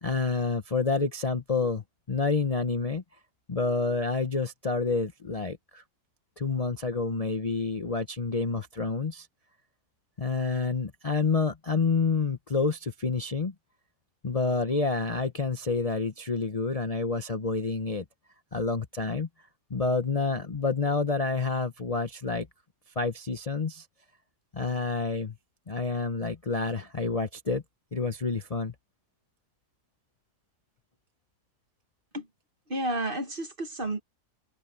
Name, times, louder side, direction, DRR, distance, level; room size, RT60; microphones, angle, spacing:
voice 1, 0.0-3.0 3.5-5.8 6.4-9.3 10.2-13.5 14.2-18.0 18.5-19.3 19.7-22.5 23.0-23.9 24.5-25.4 25.7-27.6 27.9-28.7, left 4 dB, 30° left, 0.8 m, -28 dB
voice 2, 32.7-34.0, right 1 dB, 35° right, 1.8 m, -31 dB
omnidirectional pair, 1.7 m